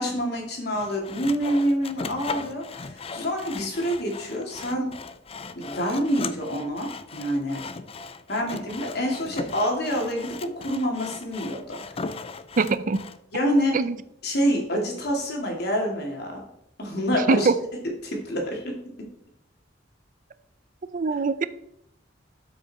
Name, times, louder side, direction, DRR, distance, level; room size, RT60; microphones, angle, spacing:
voice 1, 0.0-4.9 5.6-7.6 8.3-12.0 13.3-13.8 14.2-16.4 16.8-17.5 17.8-18.8, equal, 60° left, 1 dB, 2.6 m, -27 dB
Sawing, 0.7-13.2, left 4 dB, 30° left, 0.5 m, -38 dB
voice 2, 12.6-13.0 13.7-13.9 17.3-17.5 20.9-21.4, right 4 dB, 45° right, 14 dB, 0.5 m, -22 dB
12.5 x 6.1 x 4.2 m, 0.77 s
head